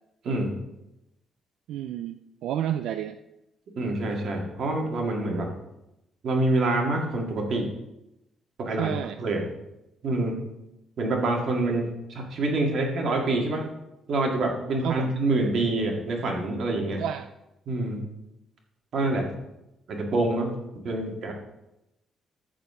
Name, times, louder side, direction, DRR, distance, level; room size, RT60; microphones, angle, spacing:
voice 1, 0.2-0.6 3.7-5.5 6.2-7.7 8.6-9.4 10.0-10.4 11.0-13.7 14.1-17.0 17.7-18.0 18.9-19.3 19.9-20.5 20.8-21.3, right 2 dB, 45° right, 1 dB, 2.2 m, -26 dB
voice 2, 1.7-3.2 8.8-9.2 14.8-15.1 17.0-17.3, right 10 dB, 75° right, 9 dB, 0.4 m, -30 dB
14.5 x 4.9 x 5.7 m, 0.90 s
cardioid pair, 175°, 0 cm